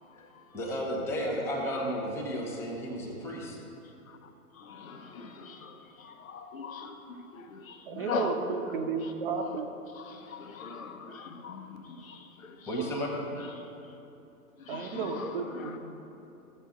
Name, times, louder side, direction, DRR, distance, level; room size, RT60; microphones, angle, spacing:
voice 1, 0.5-3.6 12.7-13.2, equal, 5° left, -3 dB, 0.9 m, -33 dB
voice 2, 4.6-7.0 7.3-8.3 9.4-9.5 9.9-12.6 14.7-15.8, left 5 dB, 60° left, 6 dB, 1.0 m, -40 dB
voice 3, 7.9-9.7 14.7-15.8, right 5 dB, 35° right, 5 dB, 0.9 m, -33 dB
13.5 x 7.4 x 3.7 m, 2.8 s
hypercardioid pair, 130°, 46 cm